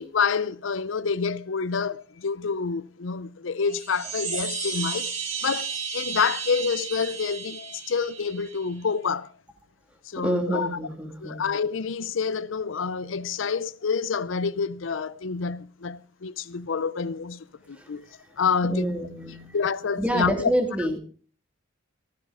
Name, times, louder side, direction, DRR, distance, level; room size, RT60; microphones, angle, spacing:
voice 1, 0.0-5.1 5.4-9.3 10.0-10.7 11.2-18.1 18.4-19.0 19.5-20.5, left 5 dB, 75° left, 0.6 m, -28 dB
sound 1, 3.6-8.7, right 6 dB, 40° right, 2.9 m, -33 dB
voice 2, 10.2-11.5 17.7-17.9 18.7-19.6 20.0-21.0, right 1 dB, 5° right, 2.6 m, -28 dB
15.0 x 13.5 x 4.9 m
head